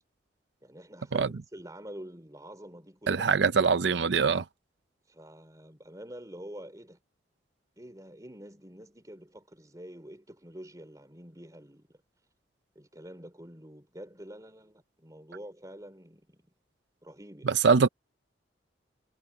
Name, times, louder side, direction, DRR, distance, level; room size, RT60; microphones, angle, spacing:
voice 1, 0.6-3.3 5.1-7.0 7.8-11.9 12.7-16.4 17.0-17.5, equal, 20° right, 3.4 m, -47 dB
voice 2, 3.1-4.4 17.4-17.9, right 5 dB, 65° right, 0.6 m, -23 dB
head